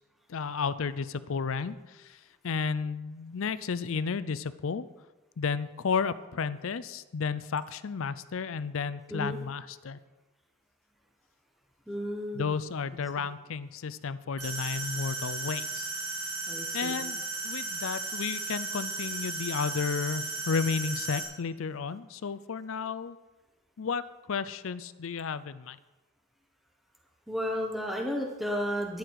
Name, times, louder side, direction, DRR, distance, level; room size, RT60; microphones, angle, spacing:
voice 1, 0.3-4.9 5.4-10.0 12.3-15.9 16.7-23.2 23.8-25.8, left 5 dB, 65° left, 15 dB, 0.5 m, -32 dB
voice 2, 11.9-12.5 16.5-17.0 27.3-29.0, equal, ahead, 0 dB, 1.2 m, -33 dB
sound 1, 14.4-21.2, right 3 dB, 80° right, 4.1 m, -35 dB
12.5 x 10.5 x 4.7 m, 1.2 s
head